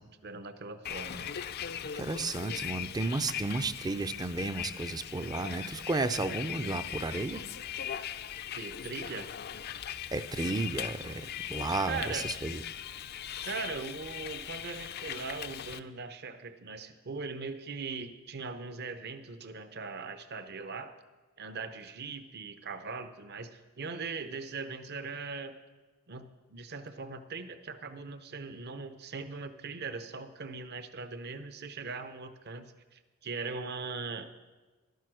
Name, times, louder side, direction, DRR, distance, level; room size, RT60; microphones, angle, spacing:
voice 1, 0.0-1.3 8.5-9.3 11.9-12.3 13.5-21.0 21.4-25.6 26.1-34.3, right 4 dB, 50° right, 10 dB, 0.8 m, -40 dB
Bus, 0.8-15.8, left 9 dB, 50° left, 0.4 m, -39 dB
voice 2, 2.0-7.4 10.1-12.6, right 3 dB, 20° right, 11 dB, 0.5 m, -33 dB
12.0 x 9.3 x 6.2 m, 1.3 s
head